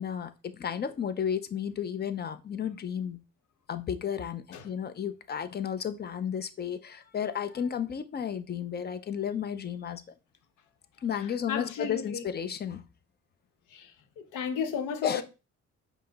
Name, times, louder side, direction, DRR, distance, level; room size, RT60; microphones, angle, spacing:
voice 1, 0.0-3.2 3.7-10.0 11.0-12.9 15.0-15.2, left 8 dB, 35° left, 0.5 m, -33 dB
voice 2, 11.5-12.2 13.7-15.2, left 6 dB, 85° left, 0.8 m, -34 dB
5.5 x 2.0 x 3.9 m
cardioid pair, 90°, 30 cm